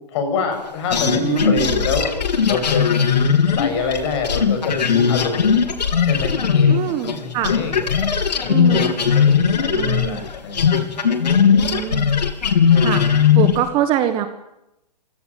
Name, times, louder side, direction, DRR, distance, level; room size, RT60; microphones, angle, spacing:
voice 1, 0.1-2.2 2.4-2.9 3.5-5.7 6.0-11.8, left 4 dB, 40° left, 6 dB, 7.3 m, -27 dB
sound 1, 0.9-7.2 7.4-13.7, left 7 dB, 85° left, 3.0 m, -18 dB
voice 2, 1.0-1.9 6.7-7.5 8.5-9.0 9.7-10.2 11.6-12.1 12.8-13.0 13.3-14.3, right 11 dB, 25° right, 9 dB, 1.5 m, -24 dB
28.5 x 16.5 x 8.5 m, 0.88 s
hypercardioid pair, 150°, 21 cm